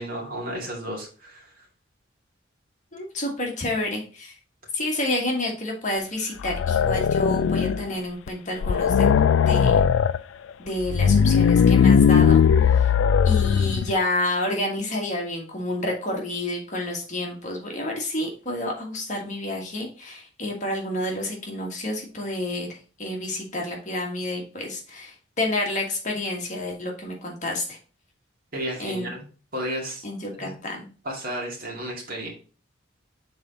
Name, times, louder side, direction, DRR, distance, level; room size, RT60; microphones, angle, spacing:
voice 1, 0.0-1.7 28.5-29.3 29.5-30.0 30.4-30.6 31.0-32.3, equal, 45° right, -1 dB, 2.1 m, -33 dB
voice 2, 2.9-4.3 4.7-9.1 9.4-9.7 10.6-12.9 13.2-27.8 28.8-29.1 30.0-30.9, left 1 dB, 40° left, 0 dB, 1.5 m, -29 dB
sound 1, 6.4-7.9 8.3-8.4 8.6-10.2 10.8-13.9, left 7 dB, 80° left, 0.3 m, -18 dB
7.0 x 4.0 x 3.8 m, 0.36 s
head